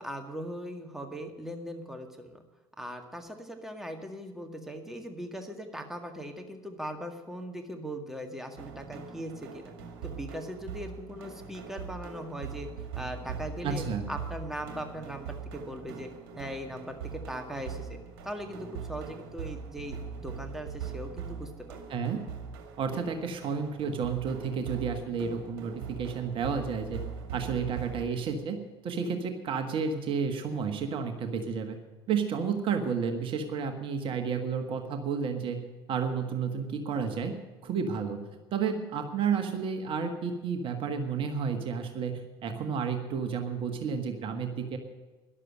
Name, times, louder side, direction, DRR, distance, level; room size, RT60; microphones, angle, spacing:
voice 1, 0.0-2.4 2.8-9.7 10.0-12.7 12.9-16.1 16.4-18.0 18.2-21.8, equal, 5° right, 4 dB, 1.9 m, -39 dB
sound 1, 8.6-28.0, right 6 dB, 60° right, 2.2 m, -41 dB
voice 2, 13.6-14.1 21.9-22.2 22.8-27.0 27.3-28.6 28.8-31.8 32.1-35.6 35.9-37.3 37.6-38.2 38.5-44.8, right 6 dB, 40° right, 6 dB, 1.5 m, -31 dB
13.5 x 11.0 x 6.4 m, 1.2 s
figure-of-eight pair, 65°, 13 cm